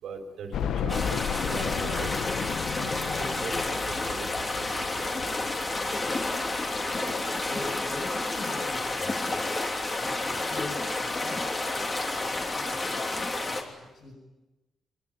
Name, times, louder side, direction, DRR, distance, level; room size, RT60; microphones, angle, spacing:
voice 1, 0.0-2.1 2.8-3.8 4.0-4.3 4.6-5.5, right 5 dB, 85° right, 5 dB, 4.4 m, -40 dB
sound 1, 0.5-9.4 9.9-10.0 10.4-10.5 11.7-11.8 12.1-12.2, left 8 dB, 80° left, 1.0 m, -35 dB
sound 2, 0.9-13.6, left 2 dB, 25° left, 3.3 m, -30 dB
voice 2, 6.9-9.5 10.0-14.1, left 3 dB, 55° left, -1 dB, 6.8 m, -42 dB
24.5 x 21.0 x 9.9 m, 1.0 s
wide cardioid pair, 165°, 0 cm